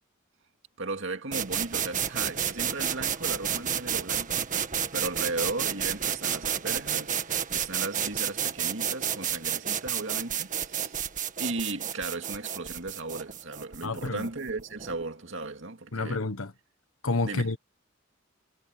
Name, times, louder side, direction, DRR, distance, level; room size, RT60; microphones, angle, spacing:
voice 1, 0.8-4.5 4.9-11.0 11.4-16.2 17.2-17.5, right 3 dB, 65° right, 2.3 m, -36 dB
sound 1, 1.3-15.0, right 8 dB, 40° right, 1.7 m, -31 dB
voice 2, 13.8-14.3 15.9-16.5 17.0-17.6, left 3 dB, 85° left, 1.3 m, -29 dB
head